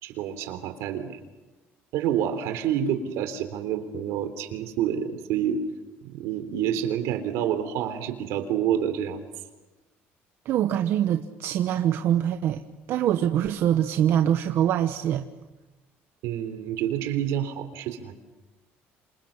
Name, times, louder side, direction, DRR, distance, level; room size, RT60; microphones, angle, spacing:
voice 1, 0.0-1.2 1.9-5.6 6.0-9.2 16.2-18.1, right 9 dB, 80° right, 3.5 m, -28 dB
voice 2, 10.4-12.6 12.9-15.3, right 10 dB, 55° right, 1.1 m, -24 dB
28.0 x 26.5 x 7.3 m
cardioid pair, 155°, 5 cm